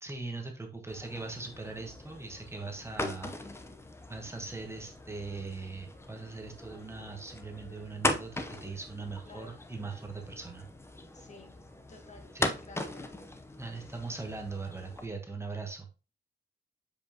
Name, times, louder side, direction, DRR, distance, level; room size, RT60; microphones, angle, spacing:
voice 1, 0.0-3.3 4.1-10.7 12.3-12.5 13.6-15.9, right 3 dB, 15° right, 1.1 m, -40 dB
sound 1, 0.9-15.1, left 2 dB, 15° left, 0.7 m, -39 dB
voice 2, 9.3-9.6 11.1-11.5 11.9-12.3 12.6-13.1, left 2 dB, 45° left, 1.5 m, -52 dB
7.0 x 5.3 x 2.8 m
wide cardioid pair, 125°, 17 cm